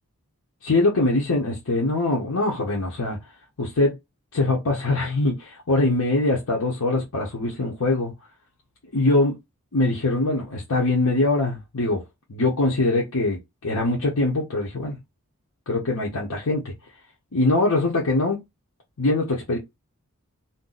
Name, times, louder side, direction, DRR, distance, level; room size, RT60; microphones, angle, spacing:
voice 1, 0.6-3.2 3.6-3.9 4.3-8.1 8.9-9.4 9.7-12.0 12.3-15.0 15.7-16.6 17.3-18.4 19.0-19.6, left 2 dB, 85° left, 0.8 m, -22 dB
2.6 x 2.2 x 3.8 m
head